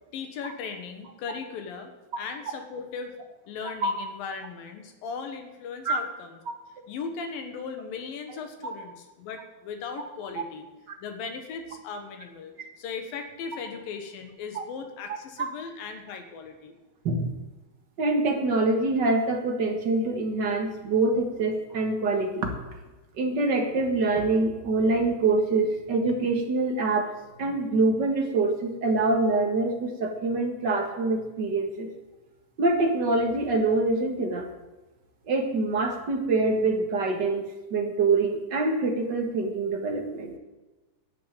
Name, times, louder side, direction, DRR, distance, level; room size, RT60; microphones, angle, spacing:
voice 1, 0.1-1.9 2.2-3.2 3.5-6.4 6.9-10.7 11.0-12.5 12.8-16.7, left 5 dB, 75° left, 6 dB, 3.1 m, -37 dB
voice 2, 18.0-22.5 23.2-27.1 27.4-31.9 32.6-34.5 35.3-37.4 37.7-40.3, right 3 dB, 45° right, 3 dB, 1.5 m, -25 dB
11.5 x 7.6 x 9.1 m, 1.1 s
omnidirectional pair, 4.1 m